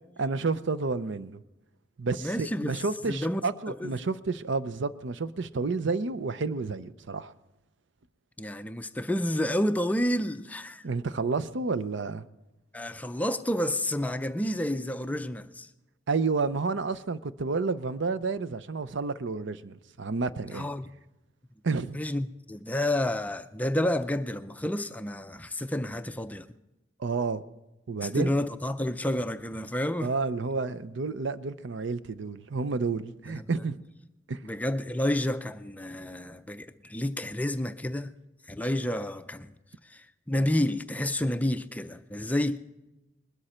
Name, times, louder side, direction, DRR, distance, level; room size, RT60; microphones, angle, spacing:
voice 1, 0.2-1.4 2.0-7.3 10.8-12.3 16.1-20.7 21.6-22.0 27.0-27.4 27.9-28.3 30.0-33.8 34.3-34.4, right 4 dB, 65° right, 0.6 m, -30 dB
voice 2, 2.2-2.8 3.1-3.4 3.7-3.9 8.4-10.8 12.7-15.7 20.5-20.9 21.9-26.5 28.0-30.1 33.2-33.5 34.4-38.1 38.5-39.5 39.8-42.6, left 1 dB, 10° left, 0.4 m, -30 dB
20.5 x 13.0 x 4.3 m
head